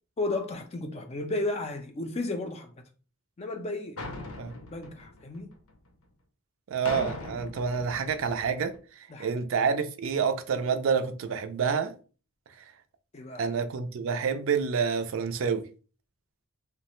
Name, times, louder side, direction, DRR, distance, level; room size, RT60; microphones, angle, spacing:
voice 1, 0.2-2.7 3.4-4.0 4.7-5.5 9.1-9.3 13.1-13.5, left 2 dB, 30° left, 0.4 m, -33 dB
sound 1, 4.0-5.9 6.9-8.8, left 2 dB, 80° left, 0.6 m, -40 dB
voice 2, 6.7-11.9 12.6-12.7 13.4-15.6, right 6 dB, 65° right, 0.4 m, -28 dB
3.0 x 2.1 x 3.0 m
head